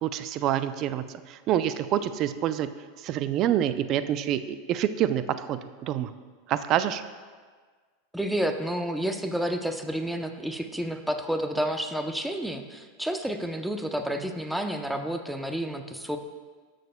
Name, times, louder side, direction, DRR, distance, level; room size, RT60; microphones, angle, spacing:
voice 1, 0.0-2.7 3.0-6.1 6.5-7.0, right 11 dB, 45° right, 12 dB, 0.4 m, -27 dB
voice 2, 8.1-16.2, equal, 5° right, 6 dB, 0.6 m, -30 dB
13.5 x 6.4 x 2.2 m, 1.5 s
hypercardioid pair, 110°, 0 cm